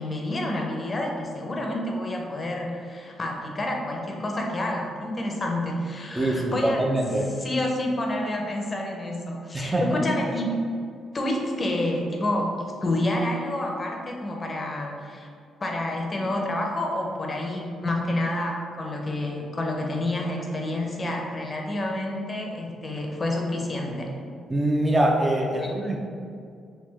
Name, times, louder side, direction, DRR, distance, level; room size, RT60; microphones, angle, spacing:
voice 1, 0.0-6.8 7.4-10.6 11.1-15.3 15.6-24.1 25.4-25.7, left 1 dB, 30° left, 0 dB, 0.6 m, -29 dB
voice 2, 6.2-7.4 9.5-10.0 24.5-26.0, right 1 dB, 20° right, 0 dB, 0.4 m, -24 dB
3.4 x 2.7 x 3.1 m, 2.3 s
cardioid pair, 90°, 0 cm